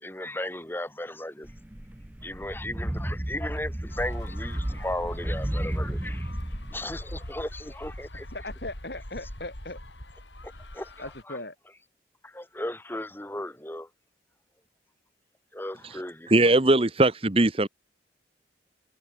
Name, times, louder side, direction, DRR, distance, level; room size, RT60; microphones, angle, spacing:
voice 1, 0.0-1.5 2.2-6.3 6.7-8.3 10.7-11.4 12.2-13.9 15.5-16.8, left 1 dB, 10° left, 3.3 m, -36 dB
sound 1, 1.4-6.8, right 1 dB, 10° right, 0.4 m, -33 dB
sound 2, 3.9-11.2, left 1 dB, 85° left, 5.7 m, -42 dB
voice 2, 8.3-9.8 11.0-11.6, left 2 dB, 65° left, 7.5 m, -38 dB
voice 3, 16.3-17.7, right 2 dB, 30° right, 1.2 m, -20 dB
head